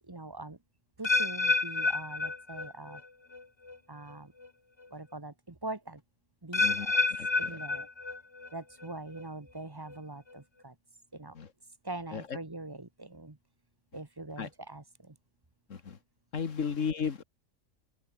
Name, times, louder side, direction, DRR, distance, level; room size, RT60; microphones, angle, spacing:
voice 1, 0.1-0.6 1.0-3.0 3.9-4.3 4.9-6.0 6.4-6.9 7.4-7.9 8.5-10.7 11.1-11.3 11.8-13.4 13.9-15.1, right 2 dB, 20° right, 1.2 m, -42 dB
sound 1, 1.0-3.1 3.3-3.8 4.4-4.5 6.5-8.5 8.8-9.2 9.9-10.0, left 3 dB, 20° left, 1.1 m, -29 dB
voice 2, 6.6-7.6 11.3-11.5 12.1-12.4 14.4-14.5 15.7-16.0 16.3-17.2, left 6 dB, 65° left, 1.8 m, -35 dB
open air
omnidirectional pair, 1.4 m